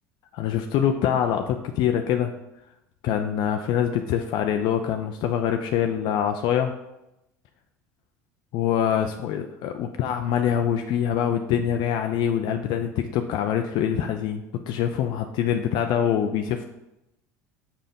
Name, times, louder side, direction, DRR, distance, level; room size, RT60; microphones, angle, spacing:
voice 1, 0.3-2.3 3.0-6.7 8.5-16.6, left 9 dB, 60° left, 5 dB, 0.5 m, -24 dB
5.6 x 5.0 x 5.2 m, 0.90 s
hypercardioid pair, 85°, 9 cm